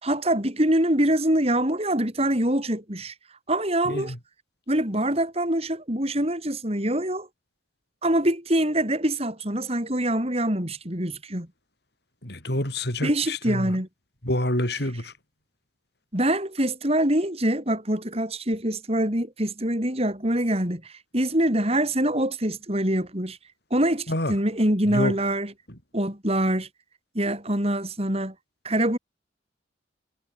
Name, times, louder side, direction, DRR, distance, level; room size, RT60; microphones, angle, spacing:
voice 1, 0.0-3.1 3.5-4.1 4.7-7.3 8.0-11.5 13.0-13.9 16.1-23.4 23.7-25.5 25.9-26.7 27.1-28.3 28.6-29.0, right 1 dB, 30° right, 6.6 m, -24 dB
voice 2, 3.8-4.2 12.2-13.8 14.2-15.1 24.1-24.3 24.9-25.2, left 1 dB, 60° left, 7.4 m, -27 dB
head